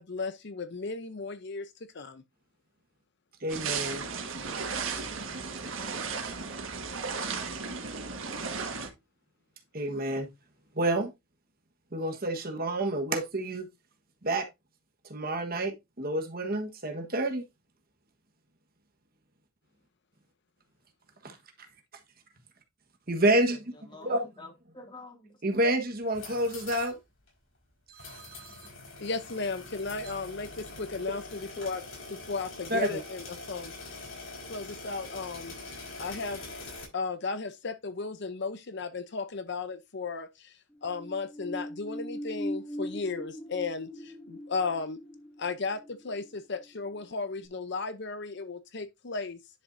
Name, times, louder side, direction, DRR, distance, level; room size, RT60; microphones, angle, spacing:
voice 1, 0.0-2.2 29.0-31.8 32.1-33.9 34.5-35.6 36.0-36.4 36.9-40.5 40.8-45.0 45.4-49.4, left 4 dB, 55° left, 0.7 m, -35 dB
voice 2, 3.4-4.0 9.7-10.3 10.7-11.1 11.9-13.7 14.2-14.5 15.1-17.4 21.2-21.4 23.1-23.7 24.0-24.3 25.4-27.0 27.9-28.6 32.7-33.0, right 1 dB, 45° right, 1.4 m, -29 dB
sound 1, 3.5-8.9, right 5 dB, 70° right, 1.7 m, -35 dB
voice 3, 4.3-6.5 23.7-25.4, left 2 dB, 20° left, 2.4 m, -51 dB
sound 2, 26.0-27.0 27.3-27.4 28.0-36.9, left 3 dB, 75° left, 4.9 m, -44 dB
sound 3, 40.7-47.1 47.4-47.5, equal, 5° left, 0.8 m, -40 dB
10.5 x 6.2 x 2.7 m
head